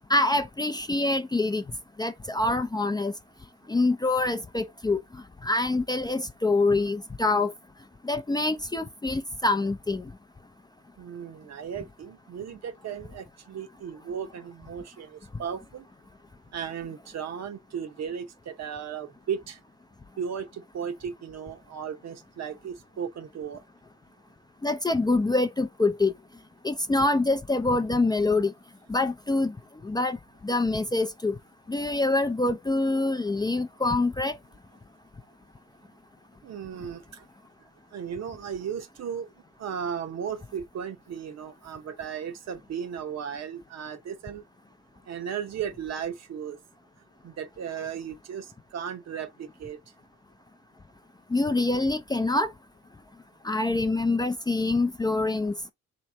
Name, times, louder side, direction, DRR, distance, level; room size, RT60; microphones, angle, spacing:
voice 1, 0.1-1.6 2.0-3.1 3.7-5.0 5.4-7.5 8.0-10.1 24.6-26.1 26.6-28.5 28.9-29.5 29.8-30.2 30.4-31.3 31.7-34.4 51.3-52.5 53.4-55.5, left 2 dB, 15° left, 0.4 m, -25 dB
voice 2, 11.0-15.9 16.5-19.6 20.2-23.6 36.4-37.3 37.9-39.3 39.6-44.4 45.1-46.6 47.2-49.8, right 7 dB, 60° right, 0.9 m, -36 dB
3.2 x 3.0 x 4.0 m
cardioid pair, 90°, 30 cm